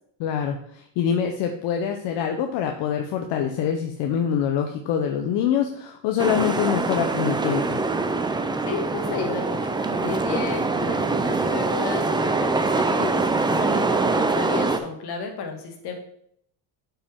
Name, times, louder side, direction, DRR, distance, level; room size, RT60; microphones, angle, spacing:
voice 1, 0.2-7.8, left 8 dB, 85° left, 4 dB, 0.9 m, -25 dB
sound 1, 6.2-14.8, right 3 dB, 10° right, 0.5 m, -24 dB
voice 2, 8.7-15.9, left 5 dB, 70° left, 3 dB, 1.9 m, -33 dB
8.4 x 5.7 x 3.6 m, 0.68 s
cardioid pair, 130°, 41 cm